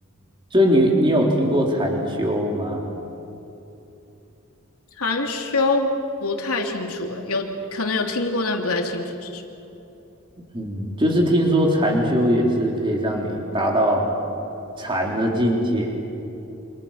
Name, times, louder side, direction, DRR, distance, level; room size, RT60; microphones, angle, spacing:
voice 1, 0.5-2.8 10.5-14.0 14.8-16.0, equal, 20° right, 0 dB, 3.6 m, -20 dB
voice 2, 5.0-5.9 6.2-9.4, left 3 dB, 85° left, 2 dB, 3.0 m, -25 dB
28.0 x 27.5 x 5.8 m, 2.9 s
head